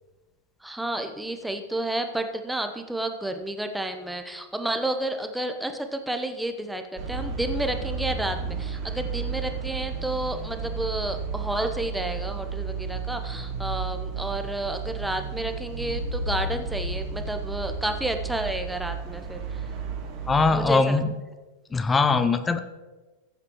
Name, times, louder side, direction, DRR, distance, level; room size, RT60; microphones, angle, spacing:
voice 1, 0.6-19.7 20.5-21.0, right 1 dB, 5° right, 7 dB, 0.9 m, -31 dB
sound 1, 7.0-20.6, right 5 dB, 40° right, 2.1 m, -32 dB
voice 2, 20.3-21.2 21.7-22.6, left 4 dB, 15° left, 11 dB, 0.6 m, -21 dB
15.5 x 8.6 x 3.1 m, 1.2 s
figure-of-eight pair, 90°, 0 cm